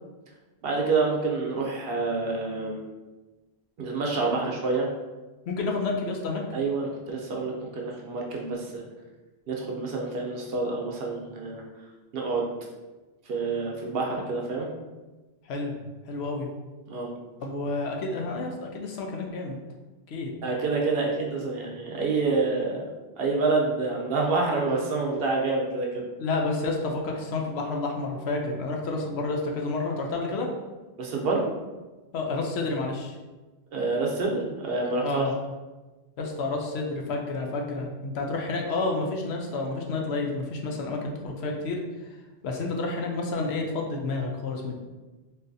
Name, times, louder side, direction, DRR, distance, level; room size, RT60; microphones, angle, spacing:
voice 1, 0.6-2.8 3.8-4.9 6.5-8.8 9.5-11.6 12.1-12.5 13.3-14.7 16.9-17.1 20.4-22.8 23.2-26.0 31.0-31.4 33.7-35.2, right 3 dB, 65° right, -1 dB, 0.8 m, -27 dB
voice 2, 5.5-6.4 15.5-15.7 16.1-16.5 17.4-19.6 20.1-20.3 26.2-30.5 32.1-33.2 35.0-35.3 36.2-41.8 42.4-44.8, left 3 dB, 75° left, 1 dB, 0.8 m, -30 dB
3.9 x 2.6 x 2.6 m, 1.2 s
omnidirectional pair, 1.1 m